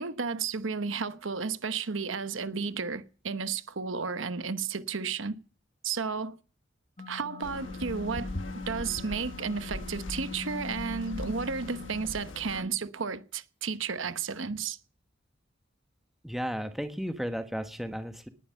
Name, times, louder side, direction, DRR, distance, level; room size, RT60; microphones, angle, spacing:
voice 1, 0.0-5.3 5.8-6.3 7.1-8.3 8.7-14.8, right 5 dB, 70° right, 1.0 m, -33 dB
sound 1, 7.0-12.0, left 4 dB, 30° left, 1.1 m, -42 dB
sound 2, 7.4-12.6, left 1 dB, 70° left, 1.3 m, -41 dB
voice 2, 16.2-18.3, equal, ahead, 1.2 m, -34 dB
19.0 x 11.5 x 5.7 m
head